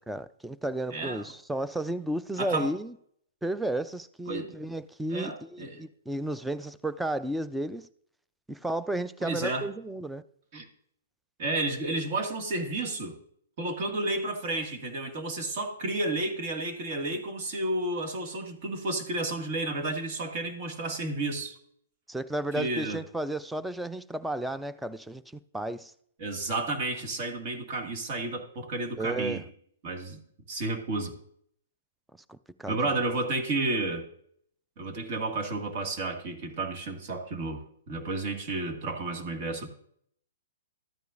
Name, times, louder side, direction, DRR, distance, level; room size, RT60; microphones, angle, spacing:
voice 1, 0.1-2.9 3.4-7.9 8.5-10.2 22.1-25.9 28.9-29.4 32.3-32.9, right 1 dB, 5° right, 0.4 m, -33 dB
voice 2, 0.9-1.2 2.4-2.7 4.3-4.6 5.1-5.8 9.2-9.7 10.5-10.7 11.4-13.2 13.6-21.6 22.5-23.0 26.2-29.4 29.8-30.2 30.5-31.1 32.7-34.1 34.8-39.7, right 2 dB, 45° right, 1.9 m, -31 dB
13.0 x 9.2 x 2.5 m
hypercardioid pair, 125°, 0 cm